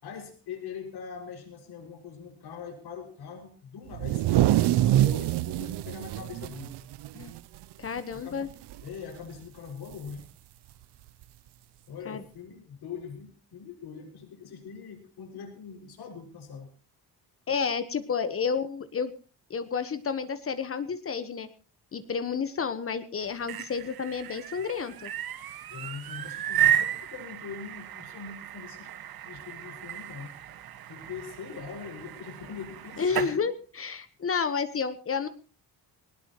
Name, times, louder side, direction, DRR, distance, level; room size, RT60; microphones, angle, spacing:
voice 1, 0.0-6.9 8.1-8.5 8.8-10.3 11.9-16.7 25.7-28.9 29.2-30.4 30.9-33.4, left 6 dB, 70° left, 3 dB, 6.0 m, -42 dB
sound 1, 3.9-7.6 8.0-8.1 8.5-8.9 10.1-10.2 11.2-11.3, right 14 dB, 80° right, 0.7 m, -25 dB
voice 2, 7.8-8.5 12.0-12.2 17.5-19.1 19.5-21.5 21.9-25.1 33.0-35.3, left 6 dB, 35° left, 12 dB, 1.2 m, -30 dB
sound 2, 23.2-33.4, right 11 dB, 60° right, 1.6 m, -33 dB
20.0 x 19.0 x 3.0 m, 0.35 s
cardioid pair, 145°, 40 cm